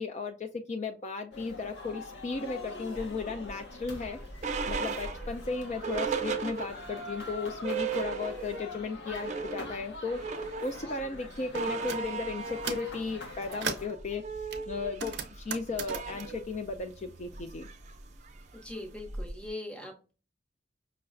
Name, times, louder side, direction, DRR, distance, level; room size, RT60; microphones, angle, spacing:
voice 1, 0.0-4.2 4.7-14.2 14.7-17.7, left 4 dB, 40° left, 5 dB, 0.4 m, -35 dB
sound 1, 1.3-13.9, left 2 dB, 80° left, 0.8 m, -44 dB
sound 2, 3.4-7.0 7.4-7.5 7.6-8.7 9.0-19.5, right 5 dB, 40° right, 0.5 m, -37 dB
sound 3, 11.5-12.0 12.4-12.9 13.3-14.0 14.5-17.4 17.7-18.8, right 6 dB, 80° right, 0.6 m, -39 dB
voice 2, 18.5-20.2, left 1 dB, 5° left, 3 dB, 0.8 m, -41 dB
5.5 x 2.1 x 2.5 m, 0.34 s
head